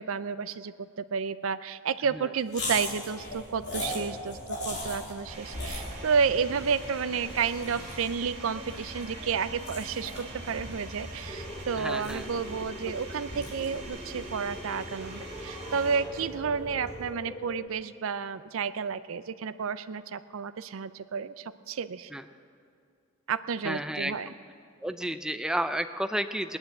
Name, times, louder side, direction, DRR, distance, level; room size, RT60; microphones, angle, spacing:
voice 1, 0.0-22.1 23.3-24.3, right 6 dB, 70° right, 13 dB, 0.5 m, -31 dB
sound 1, 2.5-15.0, left 1 dB, 55° left, 3.6 m, -40 dB
sound 2, 5.3-17.1, right 1 dB, 35° right, 3.0 m, -43 dB
sound 3, 11.3-17.7, equal, 20° left, 0.9 m, -44 dB
voice 2, 11.8-12.3 22.1-22.2 23.6-24.3 24.8-26.6, right 1 dB, 5° right, 10 dB, 0.5 m, -32 dB
17.5 x 10.5 x 7.7 m, 2.3 s
head